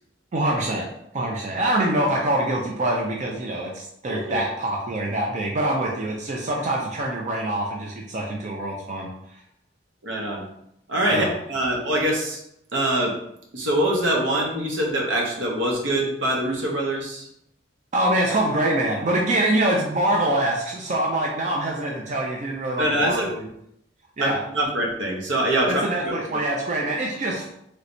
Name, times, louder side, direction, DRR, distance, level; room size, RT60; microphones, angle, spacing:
voice 1, 0.3-0.9 1.1-9.1 11.1-11.3 17.9-23.4 24.2-24.4 25.7-27.5, right 1 dB, 40° right, -1 dB, 0.5 m, -24 dB
voice 2, 4.1-4.4 10.0-10.5 10.9-12.4 12.7-13.2 13.5-17.3 22.8-23.4 24.2-26.1, right 1 dB, 75° right, 0 dB, 0.8 m, -24 dB
3.2 x 3.1 x 2.5 m, 0.75 s
head